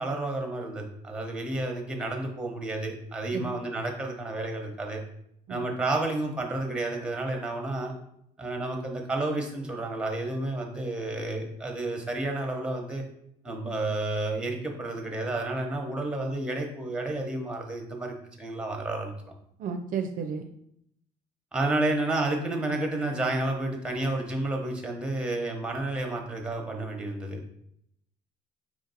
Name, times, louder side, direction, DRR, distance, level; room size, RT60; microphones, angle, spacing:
voice 1, 0.0-5.0 5.5-7.9 8.4-13.0 13.4-19.1 21.5-27.4, right 2 dB, 5° right, 2 dB, 0.9 m, -31 dB
voice 2, 19.6-20.5, right 6 dB, 55° right, 6 dB, 0.4 m, -32 dB
4.7 x 2.6 x 4.0 m, 0.74 s
cardioid pair, 110°, 17 cm